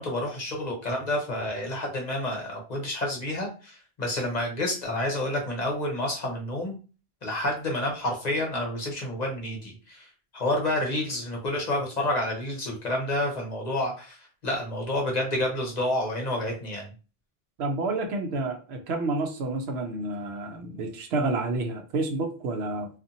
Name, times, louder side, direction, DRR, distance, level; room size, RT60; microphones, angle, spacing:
voice 1, 0.0-6.8 7.2-10.0 10.3-16.9, left 1 dB, 45° left, 0 dB, 0.8 m, -29 dB
voice 2, 17.6-22.9, right 2 dB, 80° right, 5 dB, 0.9 m, -29 dB
2.6 x 2.5 x 2.6 m, 0.34 s
omnidirectional pair, 1.1 m